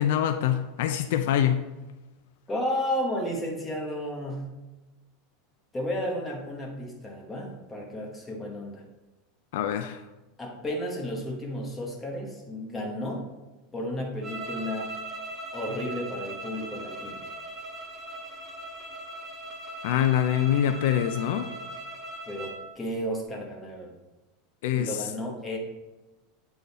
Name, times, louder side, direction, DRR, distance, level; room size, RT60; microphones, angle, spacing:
voice 1, 0.0-1.6 9.5-10.0 19.8-21.4 24.6-24.9, left 10 dB, 65° left, 8 dB, 0.4 m, -24 dB
voice 2, 2.5-4.5 5.7-8.8 10.4-13.3 13.7-14.9 15.5-17.2 22.3-23.9 24.8-25.6, equal, 10° left, -1 dB, 1.1 m, -33 dB
sound 1, 14.2-22.6, right 2 dB, 15° right, 0.8 m, -39 dB
8.3 x 3.8 x 4.0 m, 1.1 s
supercardioid pair, 175°, 0 cm